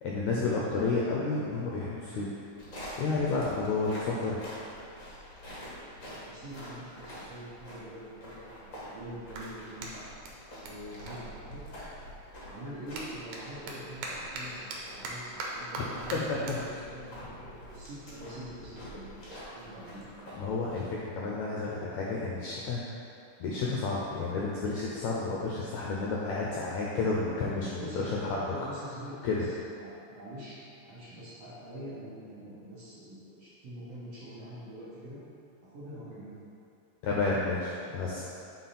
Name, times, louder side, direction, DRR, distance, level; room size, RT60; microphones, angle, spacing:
voice 1, 0.0-2.3 3.0-4.4 4.9-5.0 16.1-16.6 20.3-22.8 23.4-28.4 29.2-29.4 37.0-38.2, left 3 dB, 80° left, -4 dB, 1.6 m, -31 dB
sound 1, 2.5-20.8, equal, 45° left, 1.0 m, -47 dB
voice 2, 5.5-9.8 10.6-11.6 12.4-19.2 19.5-20.1 27.7-28.1 28.5-29.5 29.8-30.6 30.8-35.2 35.6-36.5, equal, 55° right, -9 dB, 2.0 m, -45 dB
Clapping, 9.3-12.0 12.3-19.0, right 2 dB, 80° right, 2.6 m, -43 dB
8.1 x 4.5 x 4.2 m, 2.6 s
omnidirectional pair, 4.0 m